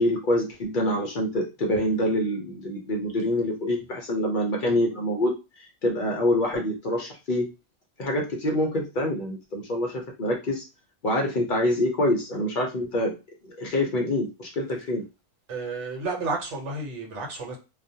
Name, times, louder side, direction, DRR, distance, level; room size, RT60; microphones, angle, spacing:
voice 1, 0.0-7.5 8.0-10.6 11.0-13.1 13.4-15.0, left 1 dB, 60° left, 0.5 m, -26 dB
voice 2, 15.5-17.6, right 3 dB, 65° right, 1.1 m, -31 dB
2.3 x 2.1 x 2.6 m
omnidirectional pair, 1.3 m